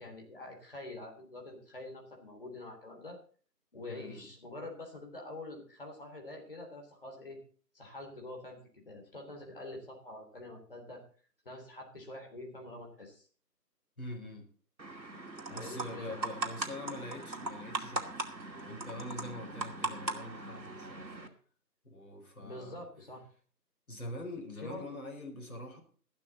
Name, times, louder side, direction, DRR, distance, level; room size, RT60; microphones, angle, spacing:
voice 1, 0.0-3.2 3.7-7.4 7.7-8.6 8.9-11.0 11.5-13.3 15.5-16.2 19.8-20.0 22.4-23.2 24.6-24.8, left 2 dB, 35° left, 0 dB, 3.6 m, -46 dB
voice 2, 3.9-4.3 14.0-14.5 15.5-21.2 21.8-22.9 23.9-25.8, left 1 dB, 55° left, 1 dB, 4.6 m, -44 dB
sound 1, 14.8-21.3, right 2 dB, 90° right, 2.5 m, -39 dB
14.5 x 11.5 x 4.2 m, 0.43 s
figure-of-eight pair, 170°, 50 cm